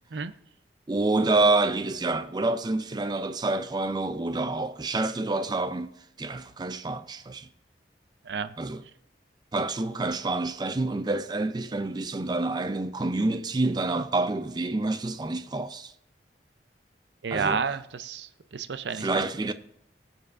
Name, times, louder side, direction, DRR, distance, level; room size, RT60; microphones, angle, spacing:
voice 1, 0.9-5.9 6.2-7.5 8.6-8.8 9.5-15.9 17.3-17.6 18.9-19.5, right 2 dB, 25° right, 0.4 m, -27 dB
voice 2, 17.2-18.3 18.5-19.1, right 5 dB, 75° right, 0.5 m, -30 dB
19.0 x 7.2 x 2.5 m
head